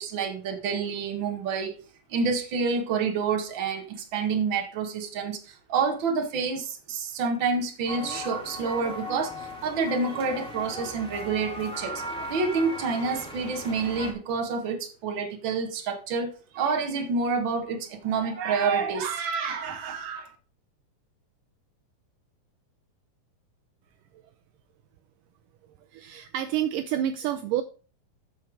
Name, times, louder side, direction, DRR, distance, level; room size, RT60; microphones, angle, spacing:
voice 1, 0.0-1.8 2.1-12.0 12.3-20.3, right 5 dB, 45° right, 1.9 m, -28 dB
sound 1, 7.9-14.1, equal, ahead, 2.1 m, -37 dB
voice 2, 25.9-27.6, right 11 dB, 80° right, 2.0 m, -28 dB
14.0 x 5.7 x 4.8 m
omnidirectional pair, 4.1 m